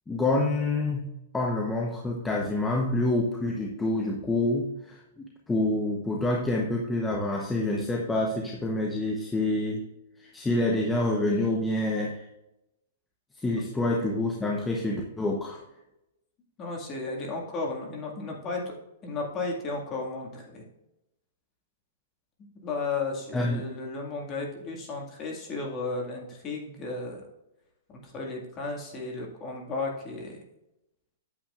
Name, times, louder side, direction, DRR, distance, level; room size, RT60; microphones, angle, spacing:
voice 1, 0.1-9.8 10.2-12.2 13.4-15.6 23.3-23.7, left 2 dB, 10° left, -1 dB, 0.9 m, -27 dB
voice 2, 16.6-18.6 19.0-20.7 22.4-27.2 28.0-30.4, left 3 dB, 25° left, -1 dB, 2.0 m, -34 dB
8.9 x 7.7 x 2.5 m, 0.90 s
hypercardioid pair, 155°, 0 cm